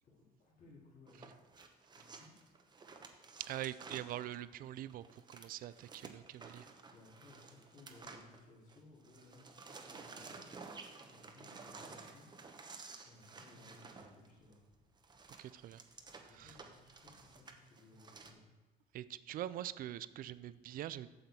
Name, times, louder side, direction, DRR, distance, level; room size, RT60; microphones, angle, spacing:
voice 1, 0.0-1.3 1.9-2.3 6.9-10.6 11.1-12.3 13.0-14.6 16.1-18.4, left 2 dB, 55° left, -5 dB, 2.8 m, -61 dB
sound 1, 1.1-8.8 9.0-18.3, right 4 dB, 25° right, 0.8 m, -53 dB
voice 2, 3.5-6.7 15.4-15.8 16.3-16.5 18.9-21.1, right 12 dB, 55° right, 16 dB, 0.4 m, -44 dB
7.9 x 6.7 x 4.2 m, 1.3 s
cardioid pair, 110°, 17 cm